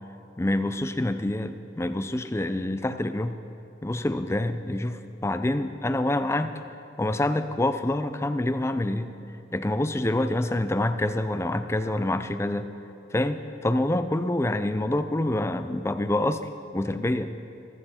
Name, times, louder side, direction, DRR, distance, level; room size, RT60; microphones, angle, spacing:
voice 1, 0.4-3.4 3.8-6.5 7.0-9.1 9.5-12.7 13.1-17.3, left 1 dB, 15° left, 10 dB, 0.4 m, -26 dB
14.5 x 14.5 x 4.3 m, 2.8 s
head